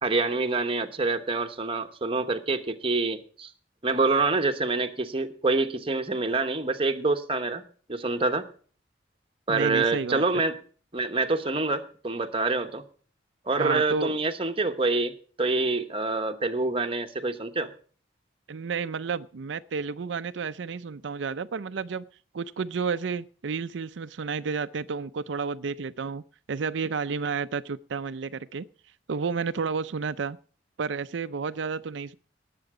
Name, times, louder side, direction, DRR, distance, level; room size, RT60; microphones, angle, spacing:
voice 1, 0.0-3.5 3.8-7.6 7.9-8.5 9.5-10.5 10.9-12.8 13.4-15.1 15.4-17.7, right 3 dB, 30° right, 6 dB, 1.0 m, -26 dB
voice 2, 9.5-10.2 13.6-14.2 18.5-22.0 22.3-26.2 26.5-28.7 29.1-30.4 30.8-32.2, right 5 dB, 80° right, 11 dB, 0.5 m, -31 dB
19.0 x 7.7 x 4.9 m, 0.43 s
head